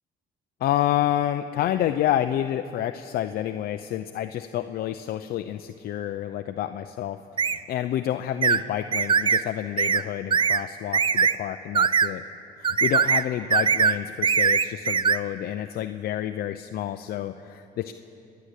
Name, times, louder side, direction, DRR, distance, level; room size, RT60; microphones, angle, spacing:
voice 1, 0.6-12.2 12.6-17.9, left 12 dB, 65° left, 7 dB, 0.7 m, -29 dB
sound 1, 7.4-7.6 8.4-8.6 8.9-9.4 9.8-10.0 10.3-10.6 10.9-11.3 11.7-12.1 12.6-13.2 13.5-14.0 14.2-15.2, right 6 dB, 30° right, 0.5 m, -21 dB
29.5 x 10.5 x 8.3 m, 2.6 s
cardioid pair, 110°, 17 cm